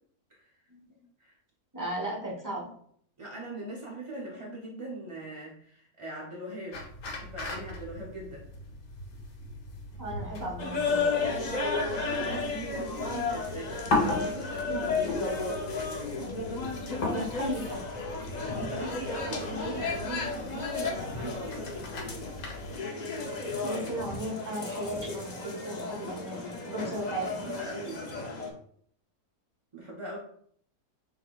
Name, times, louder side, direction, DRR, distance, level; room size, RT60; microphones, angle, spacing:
voice 1, 1.7-2.7 10.0-11.0 17.1-17.8 23.6-27.5, right 1 dB, 15° right, -2 dB, 0.9 m, -35 dB
voice 2, 3.2-6.8 7.1-8.5 11.9-15.3 18.5-22.0 26.8-28.0 29.7-30.2, right 2 dB, 45° right, -3 dB, 0.4 m, -40 dB
sound 1, 6.7-22.8, left 2 dB, 90° left, 1.6 m, -37 dB
sound 2, 10.6-28.5, left 4 dB, 60° left, 0.4 m, -33 dB
5.8 x 3.6 x 2.4 m, 0.63 s
omnidirectional pair, 1.7 m